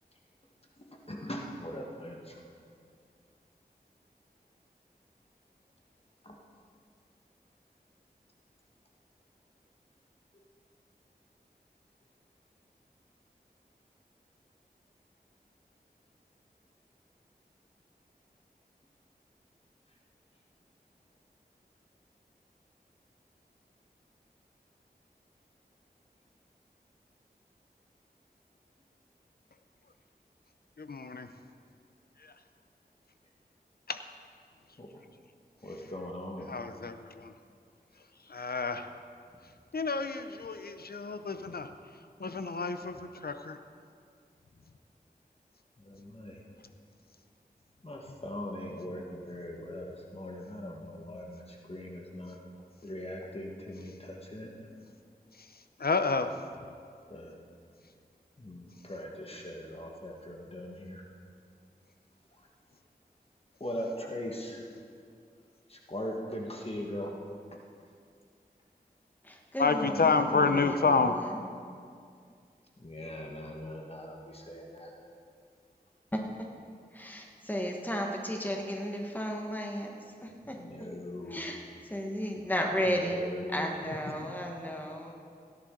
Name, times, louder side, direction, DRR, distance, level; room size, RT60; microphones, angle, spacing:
voice 1, 0.8-2.4 6.2-6.4 34.8-34.9 35.6-36.5 45.8-46.4 47.8-52.4 52.8-54.7 57.1-57.3 58.4-61.0 62.3-62.5 63.6-64.7 65.7-67.2 72.8-74.9 78.5-79.1 80.6-81.4 82.4-82.5 82.9-83.8 84.2-84.3, left 1 dB, 35° left, 0 dB, 1.5 m, -41 dB
voice 2, 30.8-31.3 32.2-32.3 33.9-34.0 36.5-37.3 38.3-38.9 39.7-41.7 42.2-43.6 55.4-56.3 69.6-71.2, left 4 dB, 70° left, 9 dB, 0.7 m, -29 dB
voice 3, 69.2-71.4 76.1-76.2 76.9-80.6 81.3-81.6 81.8-83.2 83.5-85.2, equal, 10° left, 1 dB, 1.4 m, -34 dB
17.0 x 10.5 x 3.8 m, 2.3 s
wide cardioid pair, 45°, 17 cm